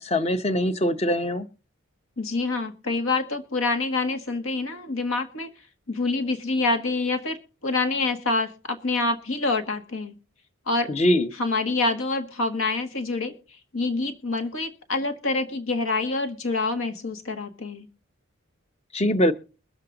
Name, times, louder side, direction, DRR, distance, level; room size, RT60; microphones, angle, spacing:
voice 1, 0.0-1.5 10.9-11.3 18.9-19.3, left 1 dB, 30° left, 11 dB, 0.8 m, -22 dB
voice 2, 2.2-5.5 5.9-7.4 7.6-10.1 10.7-10.9 11.4-13.3 13.7-17.9, left 3 dB, 80° left, 7 dB, 1.5 m, -26 dB
22.0 x 7.4 x 3.8 m, 0.34 s
head